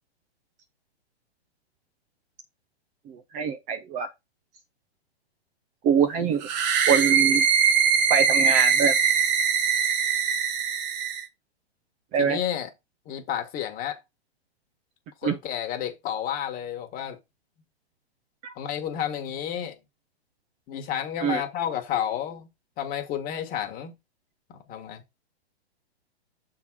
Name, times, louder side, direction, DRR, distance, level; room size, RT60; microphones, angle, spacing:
voice 1, 3.1-4.1 5.8-6.4 6.9-7.4 8.1-9.0 12.1-12.4 15.2-15.4 18.4-18.5 21.2-21.4, right 6 dB, 25° right, 0.6 m, -24 dB
sound 1, 6.4-11.2, right 7 dB, 40° right, 1.2 m, -22 dB
voice 2, 12.2-12.7 13.1-14.0 15.2-17.2 18.6-19.8 20.7-22.5 22.8-23.9 24.7-25.0, left 10 dB, 25° left, 1.5 m, -31 dB
6.8 x 3.8 x 4.6 m
hypercardioid pair, 130°, 32 cm